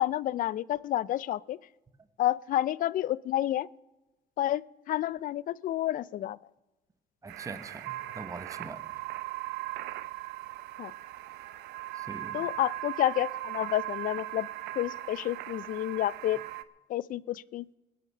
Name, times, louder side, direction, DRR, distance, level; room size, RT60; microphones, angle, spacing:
voice 1, 0.0-1.6 2.2-3.7 4.4-4.6 4.9-6.4 10.8-10.9 12.3-14.5 14.8-16.4 16.9-17.6, left 13 dB, 55° left, 23 dB, 0.4 m, -29 dB
voice 2, 7.2-8.8 12.0-12.4, right 3 dB, 20° right, 11 dB, 1.1 m, -42 dB
sound 1, 7.3-16.6, right 16 dB, 80° right, 0.7 m, -39 dB
21.0 x 8.6 x 5.5 m, 1.1 s
cardioid pair, 110°, 17 cm